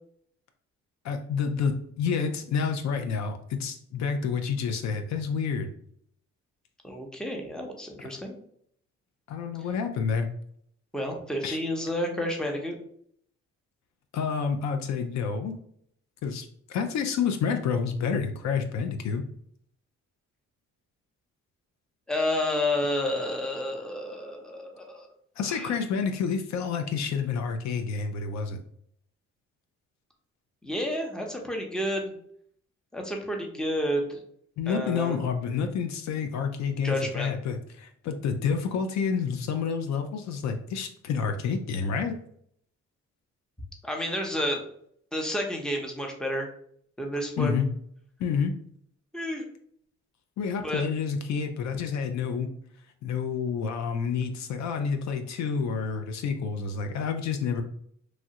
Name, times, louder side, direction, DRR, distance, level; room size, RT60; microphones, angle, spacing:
voice 1, 1.0-5.7 8.1-8.2 9.3-10.3 11.4-11.6 14.1-15.5 16.2-19.2 25.4-28.6 34.6-42.2 47.4-47.7 48.2-48.5 50.4-52.5 53.0-57.6, left 6 dB, 65° left, 7 dB, 0.4 m, -29 dB
voice 2, 6.8-8.4 10.9-12.8 22.1-25.1 25.5-25.7 30.6-32.1 32.9-34.2 34.7-35.2 36.8-37.3 43.8-44.6 45.1-46.5 47.0-47.5 49.1-49.4 50.6-50.8, left 1 dB, ahead, 2 dB, 0.6 m, -30 dB
3.1 x 2.4 x 2.8 m, 0.66 s
cardioid pair, 90°, 30 cm